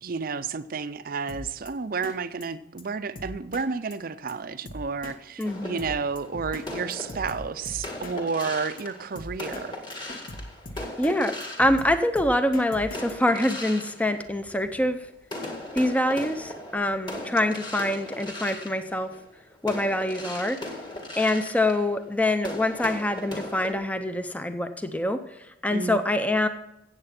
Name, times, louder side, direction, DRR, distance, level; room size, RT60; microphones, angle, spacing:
voice 1, 0.0-9.8 25.7-26.0, right 5 dB, 50° right, 12 dB, 0.5 m, -31 dB
Drum kit, 1.3-1.7 2.0-2.2 2.4-2.5 2.8-2.9 3.2-3.7 3.9-4.0 4.3-4.4 4.7-5.2 5.4-5.5 5.8-6.7 6.9-8.2 8.4-8.5 8.8-8.9 9.2-9.7 9.9-11.2 11.4-13.1, left 1 dB, 45° left, 1.2 m, -39 dB
sound 1, 5.4-12.4 12.9-14.9 15.2-23.7, left 1 dB, 25° left, 2.0 m, -38 dB
voice 2, 5.4-5.8 11.0-15.0 15.7-19.1 19.6-20.6 21.1-25.2 25.6-26.5, left 1 dB, 10° left, 9 dB, 0.6 m, -25 dB
15.5 x 8.1 x 5.9 m, 0.85 s
head